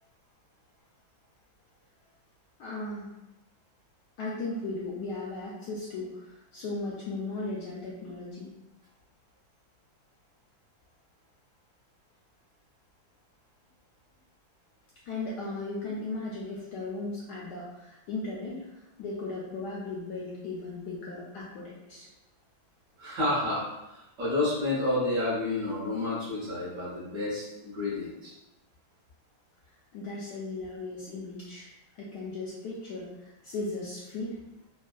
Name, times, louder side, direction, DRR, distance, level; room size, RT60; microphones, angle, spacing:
voice 1, 2.6-3.1 4.2-8.5 15.1-22.1 29.9-34.4, left 2 dB, 75° left, -5 dB, 0.9 m, -37 dB
voice 2, 23.0-28.3, left 2 dB, 55° right, -9 dB, 1.0 m, -30 dB
3.4 x 2.3 x 2.2 m, 0.94 s
omnidirectional pair, 2.2 m